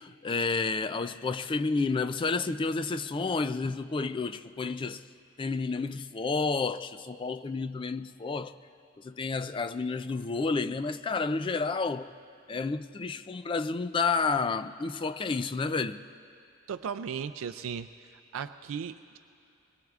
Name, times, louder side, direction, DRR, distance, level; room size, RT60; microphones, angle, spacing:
voice 1, 0.0-5.0 5.4-8.5 9.0-12.1 12.5-16.0, left 4 dB, 25° left, 0.3 m, -30 dB
voice 2, 16.7-17.9 18.3-19.2, right 7 dB, 85° right, 0.4 m, -36 dB
25.5 x 21.0 x 2.4 m
head